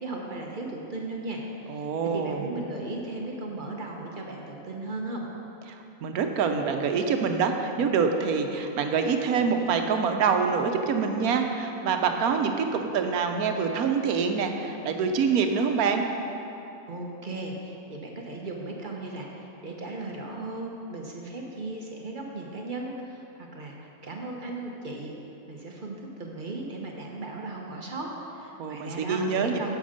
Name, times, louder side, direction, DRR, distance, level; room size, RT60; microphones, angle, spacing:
voice 1, 0.0-5.3 16.9-23.8 24.0-25.1 25.5-29.8, right 2 dB, 40° right, 0 dB, 1.1 m, -36 dB
voice 2, 1.7-2.4 5.7-16.0 28.6-29.6, right 5 dB, 85° right, 5 dB, 1.2 m, -26 dB
9.3 x 7.7 x 5.1 m, 2.9 s
omnidirectional pair, 1.5 m